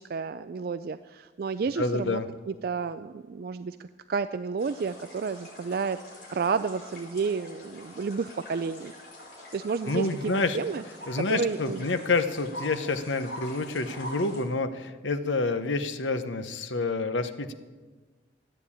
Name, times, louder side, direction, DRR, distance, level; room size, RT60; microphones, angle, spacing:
voice 1, 0.0-2.2 2.5-6.0 6.3-8.9 9.5-10.8 11.1-11.8, right 5 dB, 55° right, 12 dB, 0.3 m, -31 dB
voice 2, 1.8-2.3 9.9-10.6 11.1-17.5, left 3 dB, 85° left, 9 dB, 0.9 m, -28 dB
sound 1, 4.6-14.4, left 1 dB, 55° left, 5.3 m, -45 dB
14.0 x 9.1 x 8.5 m, 1.3 s
head